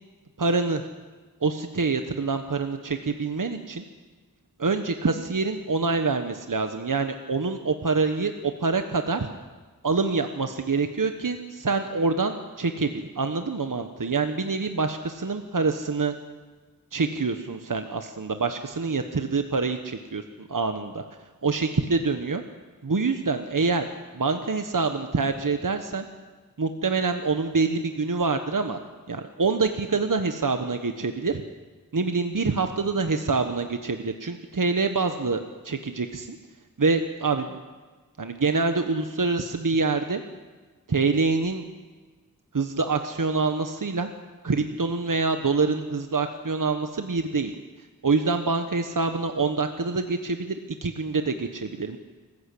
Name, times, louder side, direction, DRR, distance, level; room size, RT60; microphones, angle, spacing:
voice 1, 0.4-0.9 1.4-3.8 4.6-9.3 9.8-16.1 16.9-21.0 21.4-22.4 22.8-23.9 24.1-26.1 26.6-28.8 29.1-31.4 31.9-36.4 36.8-37.6 38.2-40.2 40.9-41.6 42.5-44.1 44.4-47.5 48.0-52.0, right 4 dB, 60° right, 7 dB, 1.3 m, -26 dB
26.0 x 15.0 x 8.5 m, 1.4 s
wide cardioid pair, 50°, 37 cm